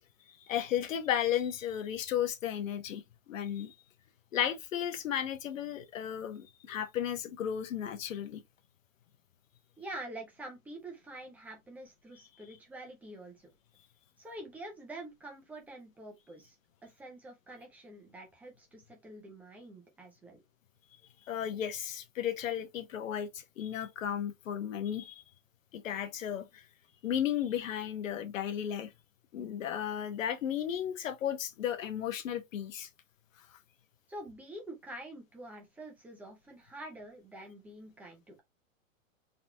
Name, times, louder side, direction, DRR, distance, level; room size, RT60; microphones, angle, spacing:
voice 1, 0.3-3.0 3.3-3.7 4.3-8.4 21.3-25.2 25.7-26.6 27.0-28.9 29.3-32.9, left 10 dB, 75° left, 1.1 m, -34 dB
voice 2, 9.8-13.5 14.2-16.6 16.8-20.4 34.1-38.4, right 1 dB, 5° right, 0.5 m, -46 dB
4.0 x 2.9 x 3.3 m
hypercardioid pair, 160°, 40 cm